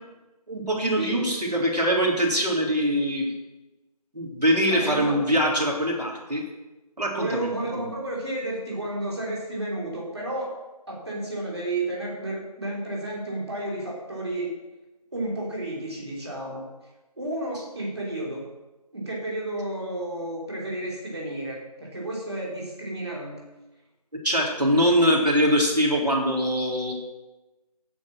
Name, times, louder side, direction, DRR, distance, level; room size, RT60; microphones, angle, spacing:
voice 1, 0.5-3.3 4.1-6.4 7.0-7.9 24.2-26.9, equal, 80° right, -2 dB, 3.9 m, -23 dB
voice 2, 4.7-5.5 7.1-10.5 10.9-14.6 15.1-16.6 17.2-18.4 18.9-23.4, right 1 dB, 40° right, -3 dB, 3.4 m, -32 dB
16.0 x 5.4 x 6.2 m, 1.1 s
figure-of-eight pair, 175°, 20 cm